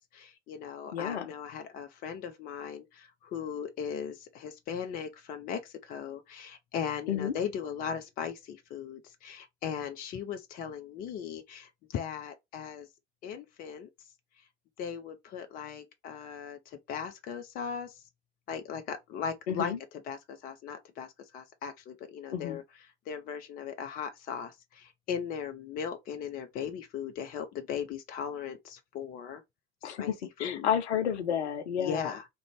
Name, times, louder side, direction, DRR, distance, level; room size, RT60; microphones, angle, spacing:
voice 1, 0.1-12.9 13.2-13.9 14.8-18.0 18.5-22.6 23.1-29.4 30.0-30.1 30.4-30.7 31.8-32.3, left 7 dB, 25° left, 0.5 m, -38 dB
voice 2, 0.9-1.3 7.1-7.3 19.5-19.8 22.3-22.6 29.8-32.1, left 8 dB, 65° left, 0.6 m, -31 dB
2.5 x 2.2 x 2.9 m
figure-of-eight pair, 80°, 36 cm